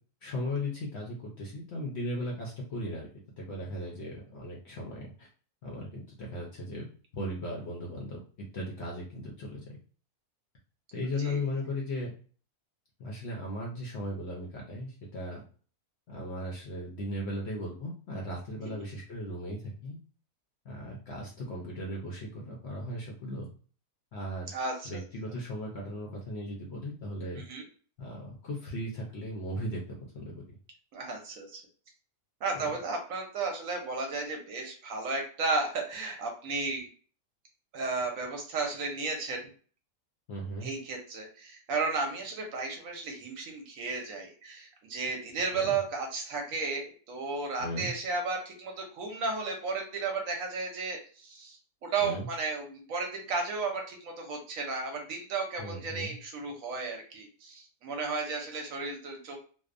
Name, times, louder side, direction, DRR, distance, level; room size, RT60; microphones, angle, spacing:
voice 1, 0.2-3.1 3.4-5.3 5.6-6.9 7.1-8.2 8.5-9.6 10.9-12.1 13.0-15.4 16.1-20.0 20.6-23.5 24.1-24.5 24.8-27.4 28.0-30.4 32.5-32.7 40.3-40.7 45.6-45.8 47.6-47.9 52.0-52.3 55.6-56.1, left 1 dB, 65° left, -2 dB, 0.7 m, -37 dB
voice 2, 24.5-25.0 27.4-27.6 30.9-31.6 32.4-36.9 37.7-39.4 40.6-51.6 51.8-59.4, right 4 dB, 70° right, 2 dB, 1.0 m, -34 dB
2.7 x 2.0 x 2.4 m, 0.41 s
omnidirectional pair, 1.6 m